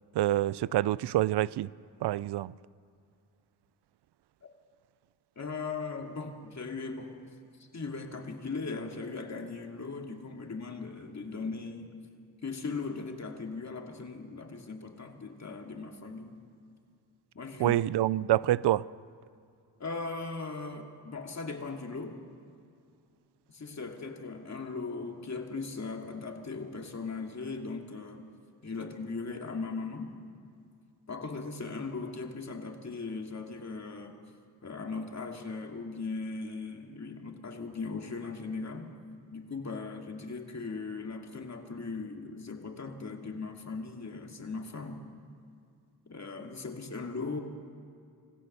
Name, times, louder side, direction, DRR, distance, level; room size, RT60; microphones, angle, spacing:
voice 1, 0.1-1.7 2.0-2.5 17.6-18.9, right 14 dB, 80° right, 0.5 m, -26 dB
voice 2, 5.4-7.2 7.6-11.9 12.4-16.4 17.3-17.8 19.8-22.2 23.5-28.2 28.6-30.2 31.1-34.1 34.6-38.9 39.3-45.1 46.1-47.4, left 4 dB, 40° left, 2.5 m, -38 dB
26.5 x 15.0 x 6.8 m
cardioid pair, 65°, 40 cm